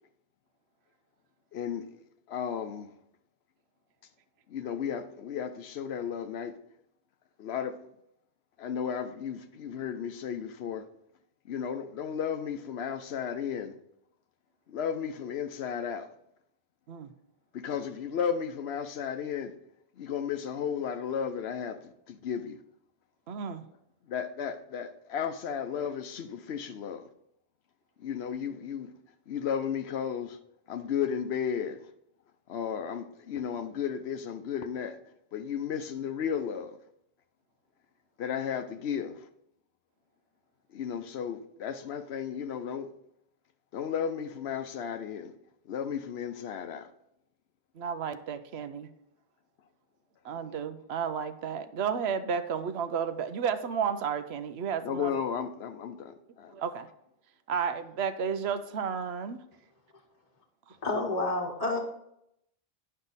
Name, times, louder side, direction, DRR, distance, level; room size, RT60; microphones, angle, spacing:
voice 1, 1.5-1.9 2.3-2.9 4.5-6.6 7.4-7.8 8.6-10.9 11.5-13.7 14.7-16.1 17.5-19.5 20.0-22.6 24.1-27.1 28.0-28.9 29.3-30.4 30.7-31.9 32.5-35.0 35.3-36.8 38.2-39.3 40.7-42.9 43.7-45.3 45.7-46.9 54.8-56.5, left 7 dB, 80° left, 0.9 m, -34 dB
voice 2, 23.3-23.6 47.8-48.9 50.2-55.1 56.5-56.9 57.5-59.4, right 7 dB, 80° right, 0.9 m, -32 dB
voice 3, 60.8-61.8, left 2 dB, 40° left, 1.0 m, -29 dB
10.5 x 5.5 x 4.0 m
omnidirectional pair, 1.1 m